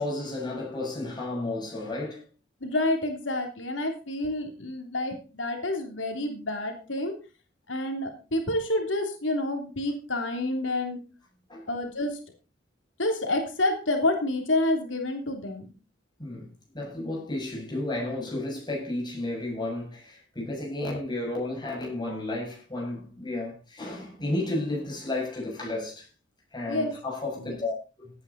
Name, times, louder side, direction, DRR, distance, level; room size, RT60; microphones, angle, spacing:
voice 1, 0.0-2.2 11.5-11.6 16.2-16.5 16.7-26.1 26.5-28.1, left 2 dB, 25° left, 7.6 m, -32 dB
voice 2, 2.6-7.1 7.7-11.0 11.7-12.2 13.0-15.7 26.7-27.0 27.4-27.6, left 1 dB, 85° left, 3.2 m, -28 dB
16.5 x 9.8 x 4.2 m
head